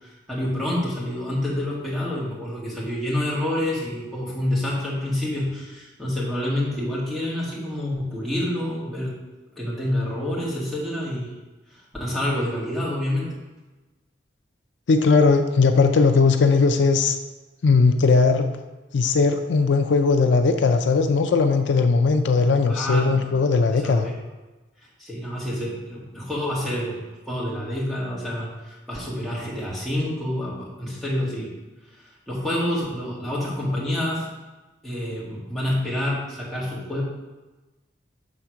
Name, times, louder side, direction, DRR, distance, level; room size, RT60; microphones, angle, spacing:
voice 1, 0.0-9.1 9.5-11.3 11.7-13.4 22.7-23.2 23.7-24.1 25.0-27.0 27.3-31.5 32.3-34.3 34.8-37.0, left 1 dB, ahead, -7 dB, 1.7 m, -28 dB
voice 2, 14.9-17.2 17.6-18.4 18.9-24.1, left 4 dB, 75° left, 7 dB, 0.4 m, -18 dB
6.3 x 3.6 x 5.7 m, 1.2 s
head